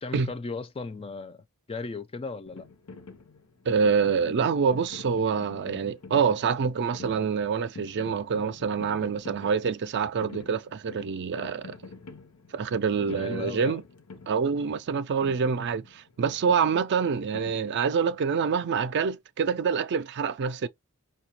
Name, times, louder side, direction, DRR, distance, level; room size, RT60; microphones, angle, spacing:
voice 1, 0.0-2.7 13.1-13.8, left 3 dB, 25° left, 0.4 m, -36 dB
sound 1, 2.5-18.2, left 3 dB, 80° left, 0.8 m, -47 dB
voice 2, 3.7-11.8 12.5-13.8 14.3-20.7, right 6 dB, 50° right, 0.4 m, -26 dB
5.7 x 2.3 x 2.8 m
head